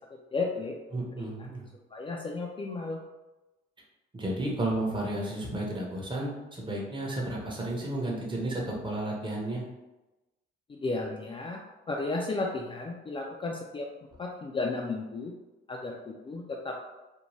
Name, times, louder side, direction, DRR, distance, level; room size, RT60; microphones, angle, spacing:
voice 1, 0.3-0.7 1.2-1.3 1.9-3.0 10.7-11.6 11.9-13.8 14.2-15.3 15.7-16.7, left 3 dB, 25° left, -1 dB, 0.3 m, -33 dB
voice 2, 0.9-1.7 4.1-9.6, right 1 dB, 25° right, -2 dB, 0.8 m, -32 dB
2.6 x 2.2 x 3.0 m, 1.1 s
cardioid pair, 90°, 20 cm